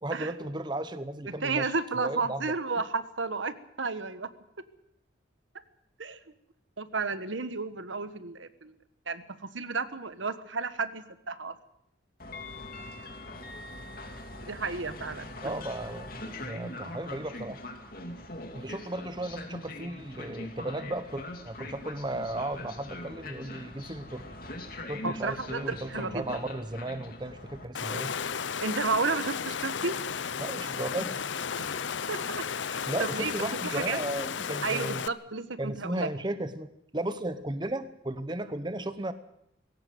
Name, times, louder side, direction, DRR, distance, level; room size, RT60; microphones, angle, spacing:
voice 1, 0.0-2.5 15.4-17.6 18.5-24.2 24.9-28.1 30.4-31.3 32.9-35.0 35.6-39.1, right 1 dB, 25° right, 11 dB, 0.9 m, -35 dB
voice 2, 1.3-4.3 6.0-6.2 6.8-8.7 9.1-11.5 14.5-15.6 25.0-26.2 28.6-29.9 31.6-31.7 32.1-33.3 33.6-34.0 34.6-36.1, right 4 dB, 80° right, 12 dB, 1.4 m, -32 dB
Train, 12.2-27.6, left 1 dB, 50° left, 2.7 m, -42 dB
Water, 27.7-35.1, left 6 dB, 75° left, 0.7 m, -34 dB
20.5 x 17.5 x 8.0 m, 0.74 s
head